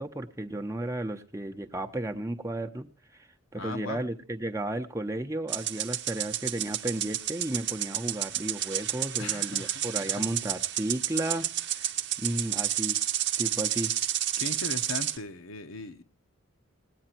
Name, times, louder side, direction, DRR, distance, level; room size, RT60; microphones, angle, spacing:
voice 1, 0.0-3.3 3.5-11.9 12.2-13.0 13.4-13.9, right 1 dB, 15° right, 5 dB, 0.8 m, -33 dB
voice 2, 3.5-4.0 9.2-10.2 14.4-16.0, left 3 dB, 75° left, 8 dB, 1.0 m, -38 dB
sound 1, 5.5-15.2, right 12 dB, 55° right, 0.8 m, -31 dB
18.5 x 8.9 x 4.4 m, 0.36 s
head